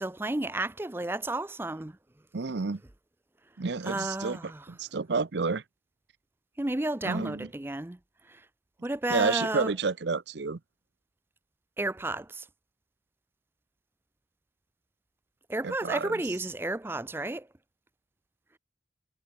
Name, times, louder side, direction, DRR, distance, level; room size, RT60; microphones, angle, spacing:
voice 1, 0.0-1.9 3.8-4.7 6.6-8.0 8.3-8.4 8.8-9.7 11.8-12.5 15.5-17.5, right 2 dB, 10° right, 0.5 m, -32 dB
voice 2, 2.3-2.8 3.6-4.4 4.7-5.6 7.0-7.5 9.1-10.6 15.6-16.2, right 4 dB, 70° right, 0.7 m, -30 dB
head